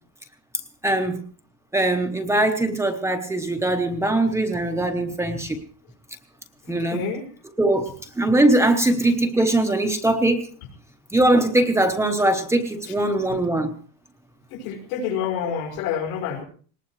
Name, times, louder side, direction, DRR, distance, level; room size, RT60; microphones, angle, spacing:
voice 1, 0.8-1.2 1.7-5.6 6.7-7.0 7.6-10.5 11.1-13.7, right 1 dB, 5° right, 4 dB, 0.9 m, -21 dB
voice 2, 6.7-7.2 13.3-13.4 14.5-16.4, left 8 dB, 75° left, 2 dB, 5.5 m, -28 dB
19.5 x 19.5 x 3.2 m, 0.43 s
cardioid pair, 170°, 42 cm